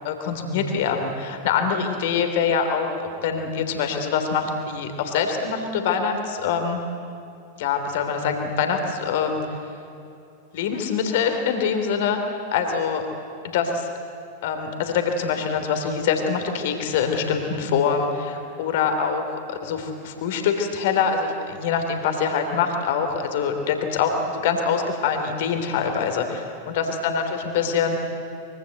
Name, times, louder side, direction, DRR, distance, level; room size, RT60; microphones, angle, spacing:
voice 1, 0.0-6.8 7.6-9.4 10.5-12.2 12.5-13.1 13.4-13.9 14.4-28.0, left 6 dB, 55° left, 6 dB, 3.3 m, -24 dB
24.5 x 24.0 x 7.9 m, 2.6 s
figure-of-eight pair, 90°, 0 cm